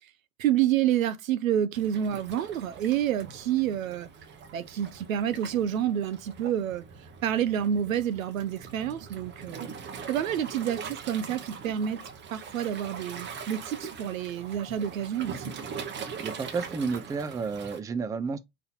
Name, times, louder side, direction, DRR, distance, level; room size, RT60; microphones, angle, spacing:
voice 1, 0.4-4.1 4.5-6.8 7.2-9.7 10.1-12.0 12.3-15.5, right 10 dB, 85° right, 0.6 m, -28 dB
Waves surf, 1.7-17.8, right 6 dB, 30° right, 0.8 m, -42 dB
voice 2, 16.2-18.4, right 5 dB, 10° right, 0.4 m, -31 dB
4.2 x 2.7 x 4.1 m
hypercardioid pair, 85°, 39 cm